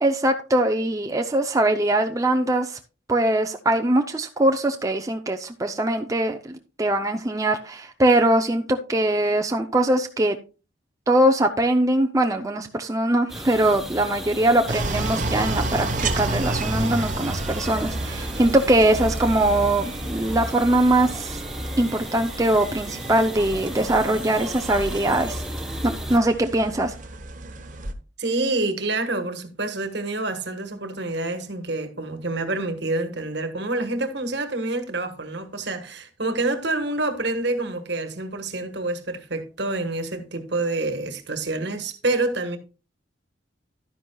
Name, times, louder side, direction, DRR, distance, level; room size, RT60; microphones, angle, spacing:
voice 1, 0.0-2.8 3.1-10.4 11.1-15.9 16.2-21.4 21.8-25.4 25.8-27.0, right 1 dB, 15° right, 0.5 m, -22 dB
sound 1, 13.3-26.2, equal, ahead, 0.9 m, -33 dB
sound 2, 14.7-27.9, right 2 dB, 40° right, 1.0 m, -32 dB
voice 2, 28.2-42.6, right 2 dB, 60° right, 1.4 m, -27 dB
11.5 x 10.0 x 2.3 m
head